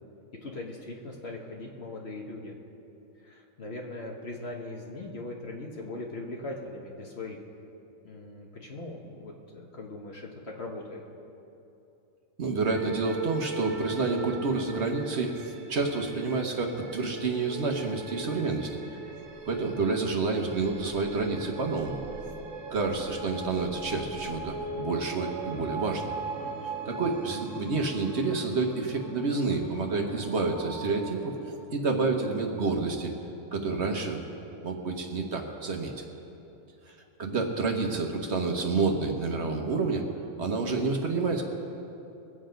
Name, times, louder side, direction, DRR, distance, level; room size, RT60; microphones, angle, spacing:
voice 1, 0.4-2.5 3.1-7.4 8.0-11.0 26.4-26.7, left 2 dB, 55° left, -1 dB, 1.5 m, -40 dB
voice 2, 12.4-18.8 19.5-22.0 22.7-26.1 26.6-31.4 31.7-33.1 33.5-34.2 34.6-36.0 36.9-40.0 40.4-41.4, right 3 dB, 60° right, 2 dB, 1.4 m, -29 dB
sound 1, 12.6-31.7, right 4 dB, 80° right, 1.5 m, -40 dB
22.0 x 8.0 x 5.2 m, 2.9 s
omnidirectional pair, 1.3 m